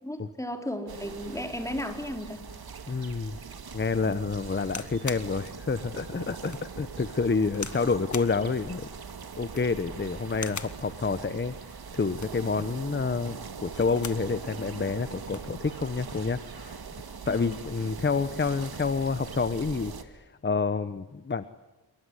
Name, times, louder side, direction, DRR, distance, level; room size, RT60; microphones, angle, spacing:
voice 1, 0.0-2.4 4.1-4.3 17.3-17.6, left 1 dB, 10° left, 4 dB, 4.1 m, -35 dB
sound 1, 0.9-20.0, right 6 dB, 65° right, 2.2 m, -41 dB
voice 2, 2.9-3.4 3.7-8.9 9.4-11.5 11.9-16.8 17.3-21.4, left 4 dB, 30° left, 13 dB, 1.0 m, -28 dB
sound 2, 4.7-5.3 5.9-6.0 6.5-6.6 7.5-7.8 8.1-8.4 9.4-9.8 10.3-10.8 12.0-12.5 13.6-14.3 14.7-14.8 15.0-15.5 16.4-16.6, left 5 dB, 45° left, 1.7 m, -40 dB
26.5 x 22.5 x 9.9 m, 1.1 s
wide cardioid pair, 95°, 39 cm